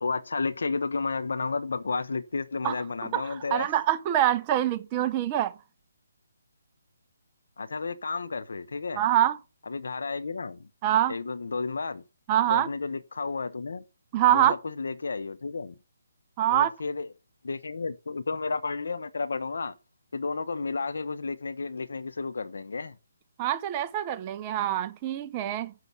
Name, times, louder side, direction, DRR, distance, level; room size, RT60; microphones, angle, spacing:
voice 1, 0.0-3.7 7.6-9.0 9.7-10.7 11.1-12.0 12.5-13.8 14.3-15.7 16.5-17.1 17.4-19.8 20.1-23.0, left 4 dB, 75° left, 1.0 m, -32 dB
voice 2, 3.1-5.5 9.0-9.4 10.8-11.2 12.3-12.7 14.1-14.6 16.4-16.7 23.4-25.7, right 12 dB, 25° right, 0.7 m, -25 dB
7.8 x 6.5 x 7.0 m
hypercardioid pair, 160°, 0 cm